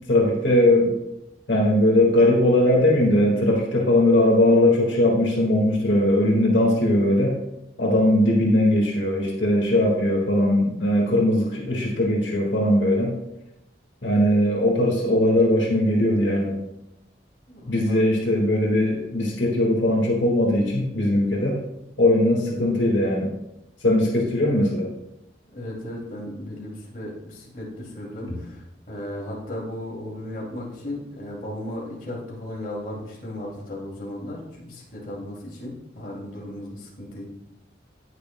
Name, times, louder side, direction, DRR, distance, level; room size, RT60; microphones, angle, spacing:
voice 1, 0.1-1.0 1.5-7.4 7.8-13.1 14.0-16.6 17.7-21.6 22.0-23.3 23.8-24.9 28.3-28.4, left 1 dB, 90° left, -1 dB, 1.8 m, -20 dB
voice 2, 7.8-8.2 17.5-18.1 25.5-37.3, left 1 dB, 50° left, -3 dB, 2.6 m, -35 dB
18.0 x 6.7 x 2.2 m, 0.88 s
head